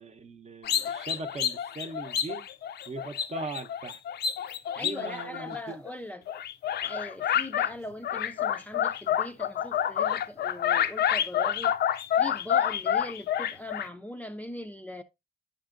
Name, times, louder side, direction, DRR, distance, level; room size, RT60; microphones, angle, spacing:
voice 1, 0.0-2.4 2.9-4.0 4.8-5.8, right 3 dB, 40° right, 0.8 m, -39 dB
sound 1, 0.6-5.9 6.3-7.7 8.0-13.9, left 9 dB, 70° left, 0.5 m, -28 dB
voice 2, 4.7-6.3 6.8-11.7 12.2-15.0, left 1 dB, 10° left, 0.4 m, -40 dB
10.0 x 5.5 x 2.5 m
cardioid pair, 90°, 18 cm